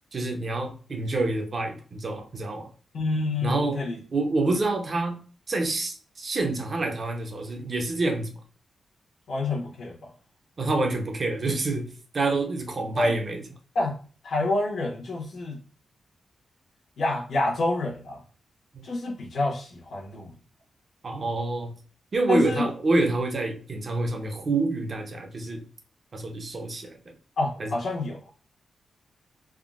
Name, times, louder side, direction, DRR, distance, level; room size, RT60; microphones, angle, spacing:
voice 1, 0.1-2.7 3.4-3.8 4.1-5.2 5.5-8.3 10.6-13.4 18.7-18.9 21.0-21.8 22.1-25.7 26.1-27.1 27.6-27.7, right 2 dB, 40° right, 0.5 m, -27 dB
voice 2, 2.9-4.0 9.3-10.0 12.9-13.1 13.7-13.9 14.2-15.6 17.0-18.2 18.8-20.3 22.3-22.7 27.4-28.3, left 2 dB, 70° left, 0.9 m, -27 dB
3.5 x 2.0 x 2.4 m
wide cardioid pair, 135°, 0 cm